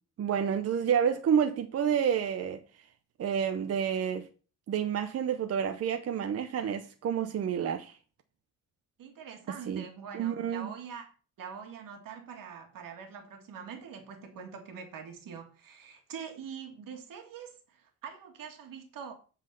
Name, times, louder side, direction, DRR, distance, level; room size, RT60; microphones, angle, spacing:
voice 1, 0.2-2.6 3.2-4.3 4.7-8.0 9.5-9.8 10.1-10.7, right 8 dB, 50° right, 0.7 m, -29 dB
voice 2, 9.0-11.1 11.4-19.1, right 7 dB, 85° right, 1.9 m, -44 dB
7.5 x 4.1 x 6.5 m
cardioid pair, 145°, 33 cm